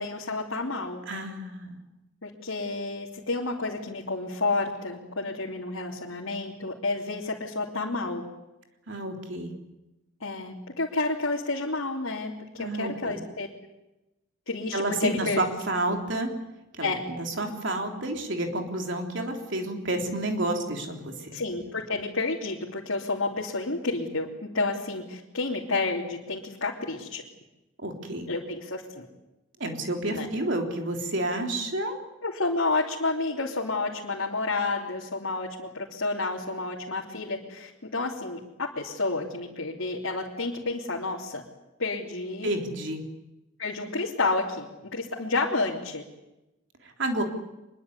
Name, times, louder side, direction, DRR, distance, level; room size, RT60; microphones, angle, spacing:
voice 1, 0.0-1.0 2.2-8.2 10.2-13.5 14.5-15.4 15.9-16.0 16.8-17.0 21.3-24.3 24.5-27.2 28.3-29.1 30.0-30.3 32.2-41.4 41.8-42.5 43.6-46.0, left 3 dB, 75° left, -3 dB, 3.1 m, -30 dB
voice 2, 1.1-1.8 8.9-9.5 12.6-13.2 14.7-16.3 16.8-16.9 17.2-21.4 27.8-28.3 29.6-32.0 42.4-43.0 47.0-47.2, right 1 dB, 60° right, 3 dB, 3.7 m, -30 dB
25.0 x 22.0 x 8.3 m, 0.97 s
head